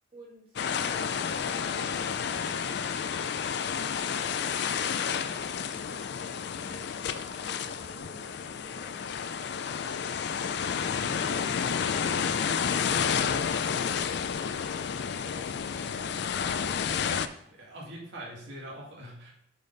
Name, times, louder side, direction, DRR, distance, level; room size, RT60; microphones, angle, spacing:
voice 1, 0.1-6.2 6.6-9.6 10.2-12.6 13.5-14.1 14.7-15.8 16.4-17.1, right 1 dB, 25° right, -3 dB, 2.0 m, -53 dB
sound 1, 0.6-17.3, left 7 dB, 55° left, 0.3 m, -30 dB
voice 2, 17.5-19.3, right 1 dB, 60° right, -4 dB, 2.0 m, -43 dB
8.4 x 4.1 x 4.0 m, 0.76 s
head